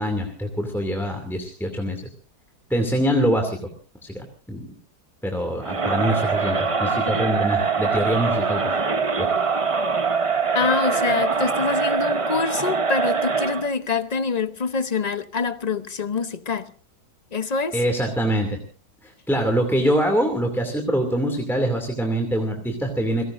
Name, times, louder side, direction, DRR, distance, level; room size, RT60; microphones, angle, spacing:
voice 1, 0.0-2.0 2.7-3.6 4.0-4.7 5.2-8.7 9.2-9.3 17.7-18.6 19.0-23.2, equal, ahead, 2.5 m, -24 dB
Crowd, 5.6-13.7, right 5 dB, 30° right, 0.6 m, -23 dB
voice 2, 10.5-16.7 17.3-17.8, left 5 dB, 35° left, 0.7 m, -25 dB
30.0 x 17.5 x 2.6 m
omnidirectional pair, 1.8 m